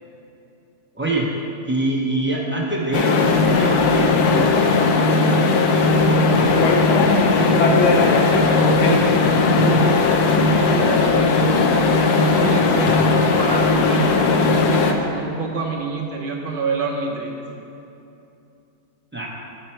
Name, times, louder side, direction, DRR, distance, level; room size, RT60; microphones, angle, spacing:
voice 1, 0.9-1.3 1.7-5.4 6.0-6.7 7.0-8.6 19.1-19.3, right 1 dB, 15° right, -4 dB, 0.4 m, -26 dB
sound 1, 2.9-14.9, left 3 dB, 80° left, 1.1 m, -17 dB
sound 2, 6.4-7.3 7.6-11.2 12.3-12.4 12.9-13.2 13.6-13.9, left 3 dB, 60° left, 1.0 m, -23 dB
voice 2, 9.5-10.0 10.4-11.5 12.0-13.1 13.4-17.4, right 4 dB, 45° right, -1 dB, 0.8 m, -27 dB
10.5 x 4.4 x 4.4 m, 2.8 s
omnidirectional pair, 1.7 m